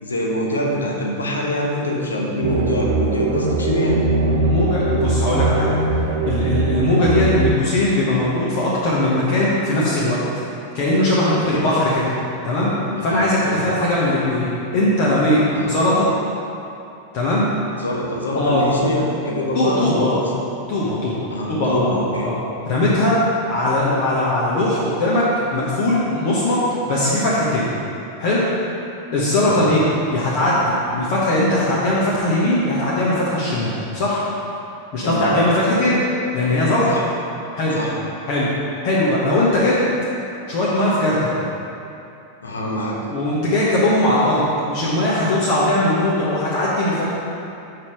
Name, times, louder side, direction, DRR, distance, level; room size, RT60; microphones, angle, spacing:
voice 1, 0.0-4.0 11.3-11.6 13.0-13.6 15.5-15.7 17.8-20.4 21.3-22.3 29.3-29.6 35.0-35.4 36.9-37.0 37.7-37.9 42.4-43.0, left 1 dB, 70° left, -2 dB, 1.0 m, -24 dB
sound 1, 2.4-7.6, right 3 dB, 60° right, 0.6 m, -20 dB
voice 2, 4.3-5.8 6.3-10.2 10.7-12.0 12.4-12.7 13.0-15.4 15.7-16.1 17.1-17.5 18.3-18.7 19.5-20.1 20.7-22.4 22.7-23.2 23.5-25.3 25.5-26.6 26.8-27.7 28.2-28.5 29.1-29.8 30.1-34.2 34.9-36.0 36.3-36.9 37.5-37.8 38.3-38.5 38.8-39.8 40.5-41.3 43.1-47.0, left 1 dB, 45° left, -7 dB, 1.2 m, -19 dB
5.7 x 4.8 x 4.8 m, 2.7 s
figure-of-eight pair, 90°, 0 cm